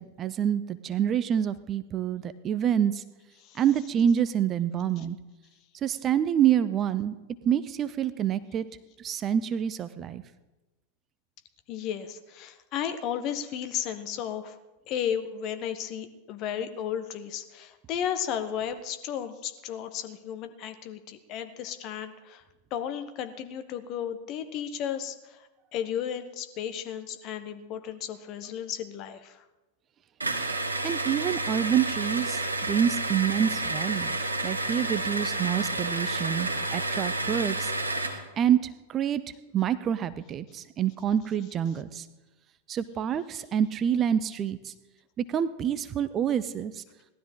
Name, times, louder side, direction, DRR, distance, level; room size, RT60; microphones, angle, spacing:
voice 1, 0.0-3.0 3.6-5.2 5.8-7.1 7.4-8.6 9.0-10.2 30.8-34.2 34.4-37.7 38.4-38.6 38.9-39.2 39.5-42.0 42.7-44.7 45.2-46.8, right 9 dB, 30° right, 14 dB, 0.5 m, -27 dB
voice 2, 11.7-14.6 14.9-22.4 22.7-29.4, left 9 dB, 40° left, 9 dB, 1.1 m, -34 dB
sound 1, 30.2-38.2, right 2 dB, 80° right, 1.5 m, -30 dB
18.0 x 12.5 x 3.7 m, 1.1 s
figure-of-eight pair, 90°, 0 cm